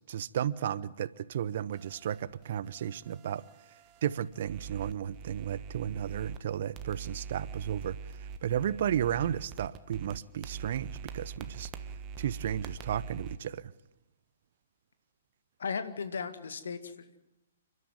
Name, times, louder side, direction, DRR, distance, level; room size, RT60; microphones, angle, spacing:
voice 1, 0.1-3.4 4.0-8.0 8.4-11.7 12.2-13.6, right 10 dB, 50° right, 0.7 m, -33 dB
sound 1, 1.7-6.4 6.7-13.4, right 6 dB, 25° right, 1.4 m, -44 dB
voice 2, 15.6-17.2, left 5 dB, 60° left, 2.0 m, -36 dB
29.5 x 12.5 x 9.5 m
figure-of-eight pair, 120°, 0 cm